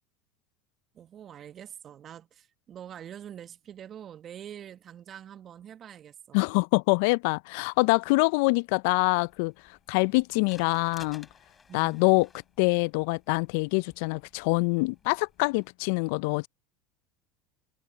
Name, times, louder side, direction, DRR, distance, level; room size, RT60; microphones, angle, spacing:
voice 1, 0.9-6.4 11.7-12.1, right 9 dB, 40° right, 1.5 m, -45 dB
voice 2, 6.3-9.5 9.9-11.3 11.7-12.3 12.6-16.5, left 29 dB, 65° left, 0.5 m, -25 dB
sound 1, 8.9-15.7, left 5 dB, 25° left, 4.4 m, -57 dB
hypercardioid pair, 85°, 0 cm